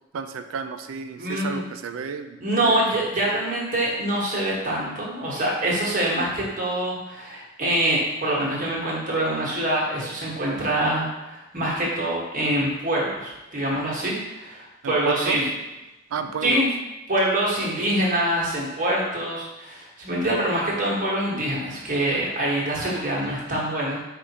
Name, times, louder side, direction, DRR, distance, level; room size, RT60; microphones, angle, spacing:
voice 1, 0.1-2.8 3.2-3.4 14.8-15.4 16.1-16.6, right 6 dB, 80° right, 8 dB, 0.4 m, -32 dB
voice 2, 1.2-1.6 2.4-15.4 16.4-16.7 17.1-24.0, right 1 dB, 40° right, -5 dB, 1.2 m, -25 dB
4.9 x 2.5 x 4.1 m, 1.0 s
head